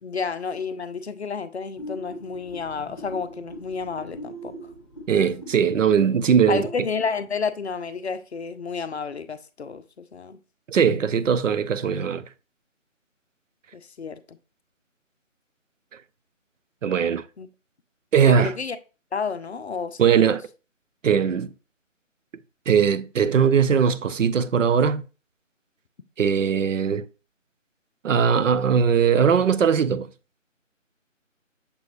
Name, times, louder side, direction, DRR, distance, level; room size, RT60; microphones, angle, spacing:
voice 1, 0.0-4.5 6.5-10.4 13.7-14.4 17.4-17.5 18.2-18.8 19.1-20.4, left 5 dB, 55° left, 0.5 m, -31 dB
sound 1, 1.8-6.8, equal, 25° left, 0.9 m, -41 dB
voice 2, 5.1-6.6 10.7-12.2 16.8-17.2 18.1-18.5 20.0-20.4 21.0-21.5 22.7-25.0 26.2-27.1 28.0-30.1, right 7 dB, 70° right, 0.5 m, -20 dB
6.8 x 2.4 x 3.1 m
figure-of-eight pair, 160°, 39 cm